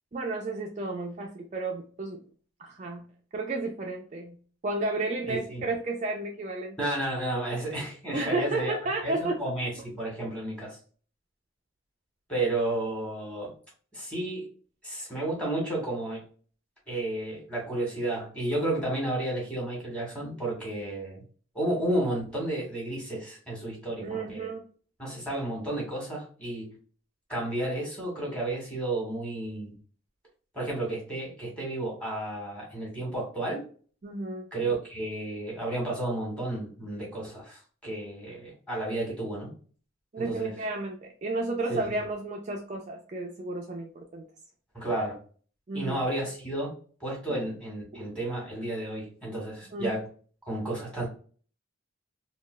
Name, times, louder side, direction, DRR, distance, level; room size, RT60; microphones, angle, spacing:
voice 1, 0.1-2.2 2.6-3.1 3.3-4.4 4.6-6.9 8.1-9.4 24.0-24.6 34.0-34.5 40.1-44.2 45.7-46.0 49.7-49.9, right 2 dB, 35° right, 1 dB, 0.4 m, -32 dB
voice 2, 5.3-5.6 6.8-8.8 9.0-10.8 12.3-13.5 13.9-14.5 14.8-16.2 16.9-21.2 21.5-24.5 25.0-26.7 27.3-29.7 30.5-33.6 34.5-39.5 40.2-40.6 41.7-41.9 44.7-45.2 45.7-46.7 47.0-50.1 50.5-51.1, right 1 dB, 5° left, -3 dB, 1.4 m, -32 dB
3.7 x 2.3 x 2.2 m, 0.42 s
head